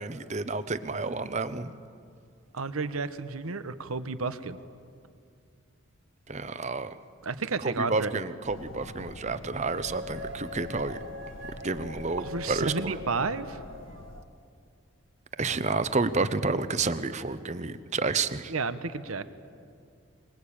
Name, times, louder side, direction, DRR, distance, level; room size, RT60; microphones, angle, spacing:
voice 1, 0.0-1.7 6.3-7.0 7.6-11.0 11.6-13.0 15.4-18.5, right 3 dB, 30° right, 13 dB, 0.8 m, -30 dB
voice 2, 2.5-4.6 7.2-8.2 12.2-13.6 18.5-19.2, right 4 dB, 80° right, 12 dB, 1.1 m, -31 dB
sound 1, 8.4-14.2, left 1 dB, 60° left, 1.5 m, -45 dB
sound 2, 9.6-14.1, left 1 dB, 50° right, 1.7 m, -42 dB
25.0 x 20.5 x 8.7 m, 2.4 s
head